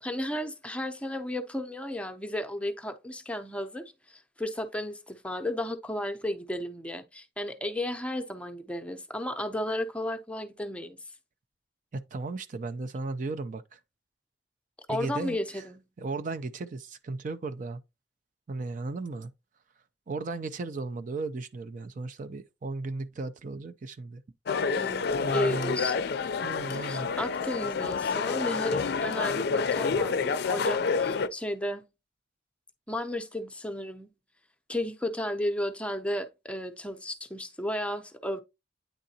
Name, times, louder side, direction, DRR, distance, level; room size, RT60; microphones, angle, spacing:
voice 1, 0.0-11.0 14.9-15.8 24.8-26.1 26.7-31.8 32.9-34.1 34.7-38.4, left 1 dB, 5° left, 0.6 m, -33 dB
voice 2, 11.9-13.8 14.9-15.7 16.0-17.8 18.5-19.3 20.1-24.2 25.2-25.8 26.4-27.1, right 3 dB, 45° right, 0.4 m, -35 dB
sound 1, 24.5-31.3, left 5 dB, 60° left, 0.4 m, -28 dB
9.1 x 3.7 x 2.8 m
head